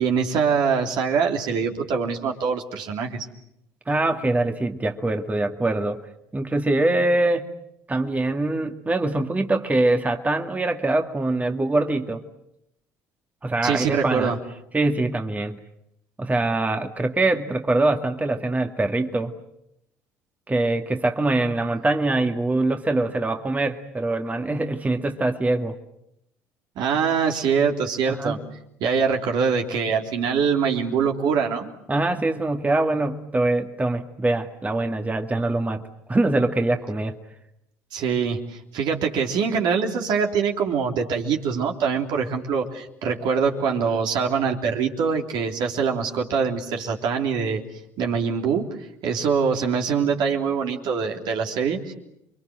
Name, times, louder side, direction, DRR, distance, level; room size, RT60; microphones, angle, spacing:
voice 1, 0.0-3.3 13.6-14.4 26.7-28.4 28.8-31.7 37.9-47.6 48.0-48.7 49.0-51.9, right 6 dB, 65° right, 2 dB, 3.4 m, -24 dB
voice 2, 3.9-6.0 6.3-7.5 7.9-12.2 13.4-14.3 14.7-15.6 16.2-19.3 20.5-25.8 28.1-28.4 31.9-35.8 36.1-37.2, right 2 dB, 20° right, 5 dB, 2.0 m, -23 dB
28.5 x 23.5 x 7.8 m, 0.80 s
hypercardioid pair, 65°, 8 cm